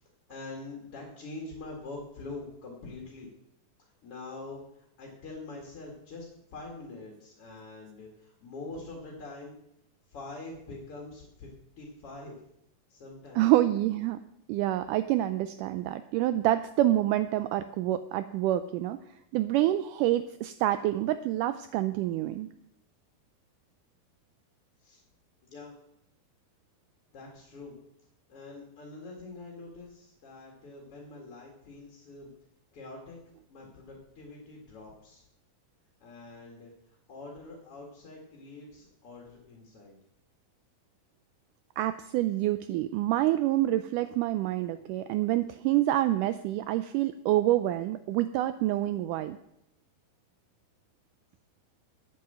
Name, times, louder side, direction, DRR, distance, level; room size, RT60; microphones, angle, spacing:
voice 1, 0.0-3.3 3.8-9.6 10.1-11.5 11.8-12.4 12.9-13.4 24.8-25.0 25.5-25.8 27.1-27.8 28.3-32.3 32.7-35.2 36.0-40.0, left 3 dB, 45° left, -1 dB, 2.6 m, -45 dB
voice 2, 13.4-14.2 14.5-19.0 19.3-22.5 41.8-49.4, right 14 dB, 85° right, 12 dB, 1.8 m, -27 dB
9.3 x 8.8 x 7.9 m, 0.81 s
omnidirectional pair, 4.2 m